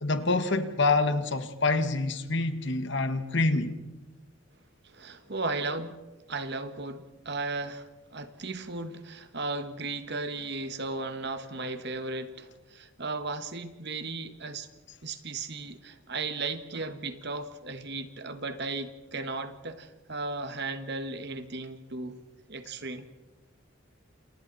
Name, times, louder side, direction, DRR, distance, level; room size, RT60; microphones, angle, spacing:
voice 1, 0.0-3.7, left 3 dB, 60° left, 1.8 m, -26 dB
voice 2, 4.8-6.0 6.3-14.7 15.0-22.2 22.5-23.1, right 3 dB, 55° right, 1.8 m, -35 dB
29.5 x 28.5 x 4.2 m
head